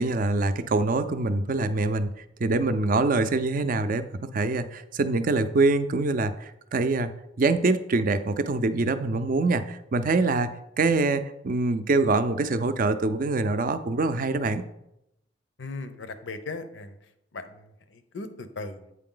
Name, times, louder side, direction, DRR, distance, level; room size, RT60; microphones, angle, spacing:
voice 1, 0.0-2.1 2.4-7.1 7.4-10.5 10.8-14.6, right 3 dB, 45° right, 11 dB, 0.4 m, -24 dB
voice 2, 15.6-17.0 17.3-18.9, left 3 dB, 80° left, 10 dB, 0.7 m, -38 dB
8.2 x 4.6 x 3.8 m, 0.84 s
head